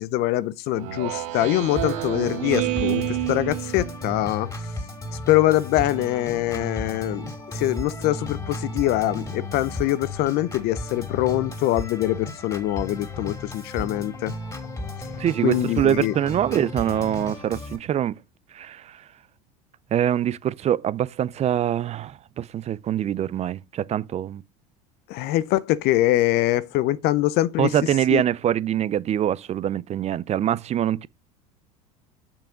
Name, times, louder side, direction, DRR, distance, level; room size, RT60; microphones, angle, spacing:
voice 1, 0.0-4.5 5.3-7.3 7.5-14.3 15.4-16.1 25.1-27.7 28.1-28.2, left 15 dB, 55° left, 0.7 m, -23 dB
Speech synthesizer, 0.8-4.3, right 13 dB, 70° right, 1.7 m, -28 dB
Organ, 1.8-17.8, left 1 dB, 20° left, 3.0 m, -34 dB
voice 2, 15.2-18.1 18.5-19.0 19.9-24.4 27.6-31.1, right 10 dB, 35° right, 0.5 m, -24 dB
6.8 x 5.8 x 5.1 m
hypercardioid pair, 85°, 19 cm